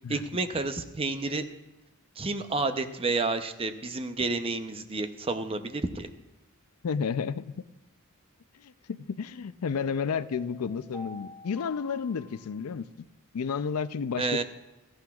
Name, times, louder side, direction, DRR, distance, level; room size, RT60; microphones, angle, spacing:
voice 1, 0.1-1.4 2.2-6.1 14.2-14.4, right 3 dB, 25° right, 9 dB, 0.6 m, -30 dB
voice 2, 6.8-7.7 8.6-12.9 13.3-14.4, left 6 dB, 85° left, 14 dB, 0.4 m, -31 dB
sound 1, 9.7-12.7, left 2 dB, 5° right, 2.6 m, -48 dB
17.5 x 14.5 x 2.4 m, 1.0 s
head